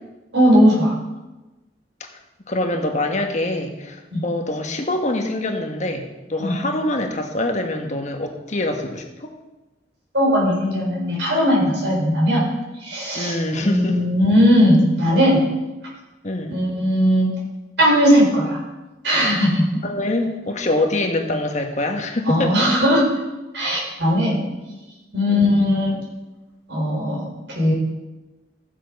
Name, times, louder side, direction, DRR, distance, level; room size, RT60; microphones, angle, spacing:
voice 1, 0.3-0.9 4.1-4.2 6.4-6.5 10.1-12.5 12.8-13.3 13.6-15.4 16.5-17.3 17.8-18.6 19.0-19.7 22.3-23.0 23.5-24.4 25.1-26.0 26.7-27.7, equal, 75° right, -3 dB, 4.7 m, -18 dB
voice 2, 2.5-9.3 13.1-14.1 16.2-16.6 19.2-19.4 19.8-22.6 24.7-24.8 25.3-25.6, left 1 dB, 40° left, 3 dB, 1.4 m, -25 dB
15.0 x 7.4 x 5.3 m, 1.1 s
head